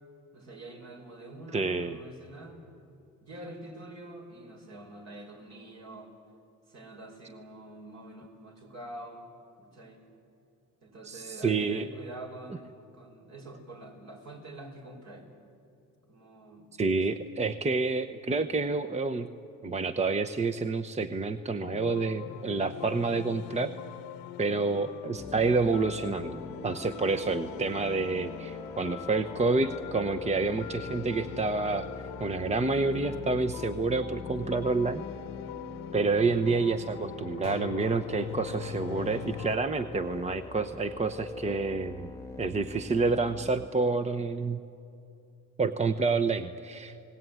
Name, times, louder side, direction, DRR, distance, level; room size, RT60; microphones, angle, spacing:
voice 1, 0.3-2.6 3.2-6.1 6.7-9.3 9.6-10.0 10.8-15.3 16.1-17.2, right 1 dB, 55° right, 2 dB, 5.5 m, -46 dB
voice 2, 1.5-2.0 11.0-11.9 16.8-19.3 19.6-23.7 24.4-35.0 35.9-42.1 42.4-44.6 45.6-47.0, right 3 dB, 20° right, 9 dB, 0.9 m, -28 dB
sound 1, 21.6-39.6, left 11 dB, 90° left, 1.1 m, -42 dB
sound 2, 25.2-43.7, left 2 dB, 10° left, 1.4 m, -44 dB
28.5 x 19.0 x 9.5 m, 2.8 s
cardioid pair, 90°, 33 cm